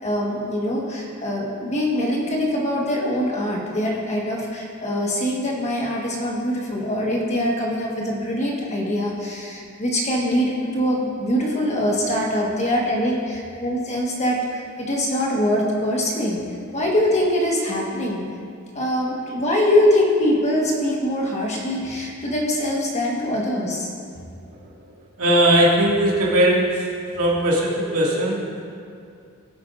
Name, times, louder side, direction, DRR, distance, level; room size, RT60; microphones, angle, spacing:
voice 1, 0.0-16.4 16.7-18.2 18.7-23.9, left 1 dB, 30° left, -2 dB, 1.4 m, -23 dB
voice 2, 25.2-26.9 27.1-28.6, right 1 dB, 80° right, -4 dB, 2.1 m, -19 dB
16.0 x 8.1 x 2.6 m, 2.4 s
head